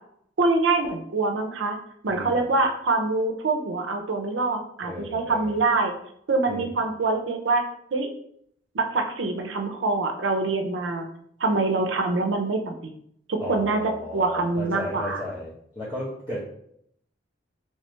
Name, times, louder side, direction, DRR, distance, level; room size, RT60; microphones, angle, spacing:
voice 1, 0.4-1.8 2.0-5.9 6.3-7.6 7.9-8.1 8.7-11.1 11.4-12.9 13.3-13.8 14.1-15.2, right 3 dB, 90° right, 3 dB, 0.6 m, -25 dB
voice 2, 2.1-2.5 4.8-5.6 6.5-6.7 13.4-16.4, left 1 dB, 25° left, -10 dB, 1.0 m, -35 dB
3.3 x 3.2 x 3.0 m, 0.70 s
head